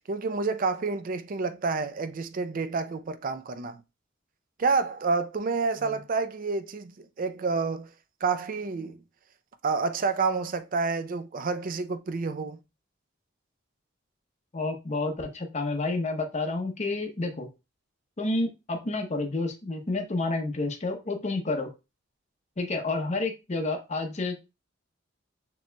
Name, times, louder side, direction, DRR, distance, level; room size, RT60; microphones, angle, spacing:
voice 1, 0.1-3.8 4.6-7.9 8.2-9.0 9.6-12.6, right 4 dB, 45° right, 0.4 m, -29 dB
voice 2, 14.5-17.5 18.2-21.7 22.6-24.4, left 2 dB, 35° left, 0.8 m, -29 dB
6.7 x 3.0 x 2.2 m
head